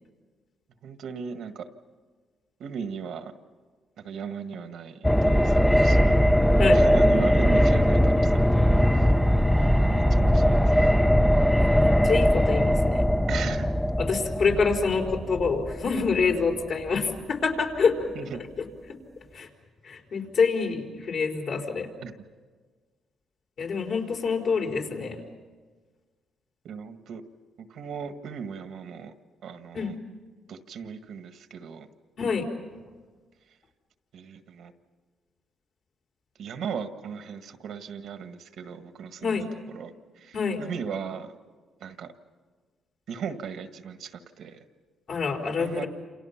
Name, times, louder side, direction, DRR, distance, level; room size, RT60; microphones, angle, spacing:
voice 1, 0.8-1.7 2.6-3.3 4.0-6.1 6.7-9.1 9.8-10.9 13.3-13.7 18.1-18.4 22.0-22.1 26.6-27.2 27.6-29.1 29.4-29.9 30.5-31.9 34.1-34.7 36.4-41.3 41.8-42.1 43.1-44.6 45.6-45.8, right 6 dB, 70° right, 8 dB, 1.6 m, -37 dB
sound 1, 5.0-16.9 17.2-17.3, equal, 5° left, 0.7 m, -21 dB
voice 2, 11.7-13.1 14.0-18.1 18.6-18.7 19.3-19.5 19.8-21.9 23.6-25.2 29.7-29.9 32.2-32.4 39.2-39.4 40.3-40.6 45.1-45.9, left 5 dB, 60° left, 1 dB, 4.5 m, -26 dB
28.5 x 28.0 x 5.9 m, 1.4 s
cardioid pair, 90°, 0 cm